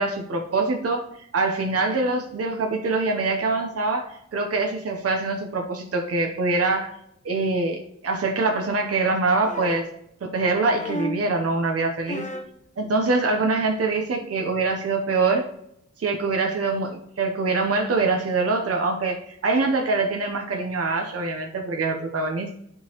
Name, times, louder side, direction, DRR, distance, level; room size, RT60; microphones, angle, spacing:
voice 1, 0.0-6.9 7.2-9.9 10.2-12.3 12.8-15.5 16.0-22.6, right 3 dB, 55° right, 2 dB, 0.8 m, -24 dB
sound 1, 9.4-10.0 10.8-11.3 12.1-12.6 13.8-13.9, left 1 dB, 25° left, 0.8 m, -32 dB
11.0 x 3.9 x 2.9 m, 0.76 s
wide cardioid pair, 105°, 29 cm